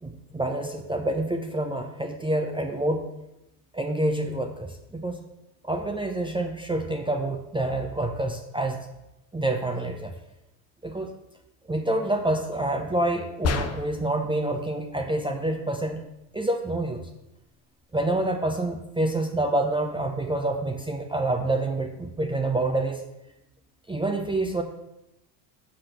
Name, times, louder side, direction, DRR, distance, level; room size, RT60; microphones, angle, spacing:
voice 1, 0.0-3.1 3.7-5.2 5.6-8.9 9.3-10.1 10.8-11.1 11.7-16.0 16.3-17.1 17.9-23.0 23.9-24.6, right 2 dB, 10° right, 3 dB, 0.7 m, -27 dB
sound 1, 13.4-14.2, left 4 dB, 30° left, 0.8 m, -28 dB
6.1 x 5.0 x 5.8 m, 0.91 s
hypercardioid pair, 75°, 50 cm